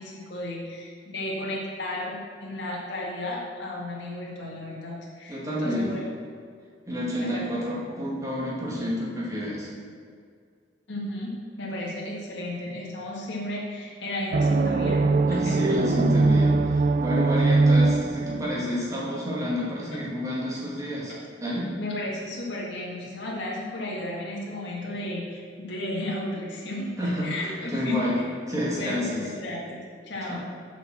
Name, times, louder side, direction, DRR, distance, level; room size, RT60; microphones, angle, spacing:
voice 1, 0.0-6.0 7.2-7.4 10.9-15.6 21.8-28.2 28.7-30.4, left 1 dB, 70° left, -3 dB, 1.7 m, -34 dB
voice 2, 5.3-5.9 6.9-9.7 15.3-21.1 21.4-21.7 27.0-28.2 28.5-29.2 30.3-30.4, equal, 20° right, -7 dB, 2.2 m, -29 dB
sound 1, 14.3-18.7, right 3 dB, 45° right, 0.4 m, -21 dB
7.1 x 6.1 x 6.0 m, 2.1 s
head